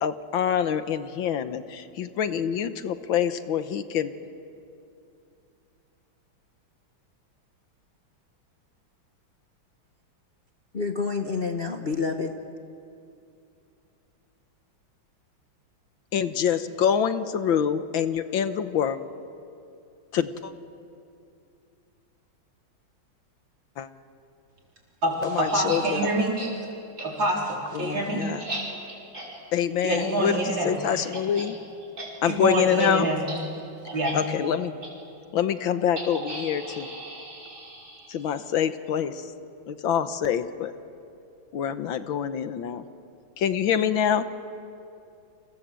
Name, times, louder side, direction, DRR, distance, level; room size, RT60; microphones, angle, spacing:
voice 1, 0.0-4.1 16.1-19.0 20.1-20.5 23.8-23.9 25.3-26.0 27.7-28.4 29.5-31.5 32.2-33.1 34.1-34.7 35.3-36.9 38.1-39.1 39.7-40.7 41.5-42.8 43.4-44.2, left 8 dB, 75° left, 11 dB, 1.8 m, -26 dB
voice 2, 10.7-12.3, left 4 dB, 35° left, 4 dB, 1.1 m, -28 dB
voice 3, 25.0-26.7 27.0-28.3 29.8-30.8 32.2-33.2 33.9-34.2, right 1 dB, 65° right, -1 dB, 5.0 m, -26 dB
sound 1, 25.4-25.8 26.4-26.5 27.0-27.1 27.5-31.5 31.8-32.1 32.3-32.5 32.8-32.9 33.2-33.4 33.9-34.1 34.8-34.9 36.0-38.3, right 2 dB, 35° right, 5.8 m, -38 dB
29.5 x 26.5 x 7.6 m, 2.6 s
omnidirectional pair, 2.2 m